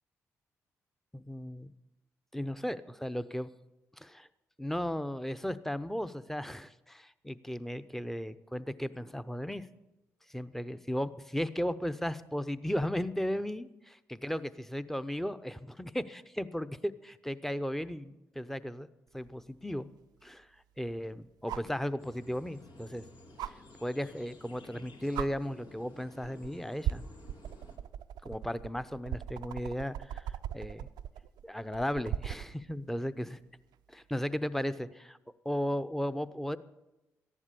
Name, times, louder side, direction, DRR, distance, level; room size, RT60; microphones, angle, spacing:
voice 1, 1.1-1.7 2.3-3.5 4.0-4.3 4.6-9.7 10.3-13.7 14.1-18.9 19.1-19.9 20.2-20.5 20.8-23.0 23.4-27.1 28.2-30.9 31.4-33.4 33.9-35.2 35.4-36.6, equal, 5° left, 13 dB, 0.8 m, -35 dB
sound 1, 19.2-19.3 21.5-21.8 23.4-23.5 24.7-24.8 25.1-25.3 26.2-26.5 26.8-32.5 34.2-34.3, right 11 dB, 75° right, 0.5 m, -38 dB
sound 2, 22.0-27.8, left 2 dB, 75° left, 2.1 m, -54 dB
14.5 x 11.0 x 6.8 m, 1.0 s
hypercardioid pair, 45°, 7 cm